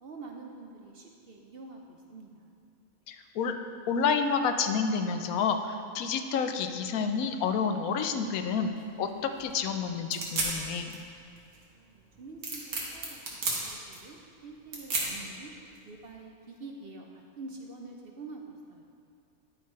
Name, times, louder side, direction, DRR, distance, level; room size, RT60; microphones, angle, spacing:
voice 1, 0.0-2.5 11.7-13.2 13.6-15.5 15.8-17.1 17.4-18.8, right 3 dB, 55° right, 1 dB, 0.7 m, -46 dB
voice 2, 3.1-3.5 3.9-8.7 9.0-10.9, left 6 dB, 90° left, 7 dB, 1.1 m, -29 dB
sound 1, 8.0-16.1, right 2 dB, 80° right, 1.8 m, -36 dB
11.5 x 4.7 x 4.7 m, 2.4 s
omnidirectional pair, 1.5 m